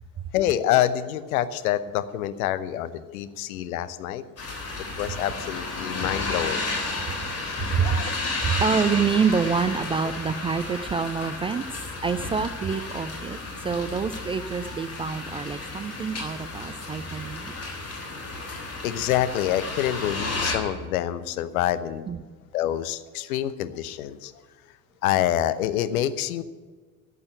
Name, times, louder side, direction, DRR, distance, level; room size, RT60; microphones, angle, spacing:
voice 1, 0.3-4.2 5.0-6.7 7.4-8.1 18.8-22.1 22.5-24.3 25.0-26.4, left 12 dB, 65° left, 13 dB, 0.9 m, -27 dB
Rainy Day, 4.4-20.5, left 3 dB, 30° left, 3.7 m, -32 dB
voice 2, 7.6-8.1 8.4-11.7 12.0-17.5 22.1-22.2, right 6 dB, 15° right, 12 dB, 0.3 m, -27 dB
14.0 x 8.4 x 9.0 m, 1.5 s
figure-of-eight pair, 60°, 46 cm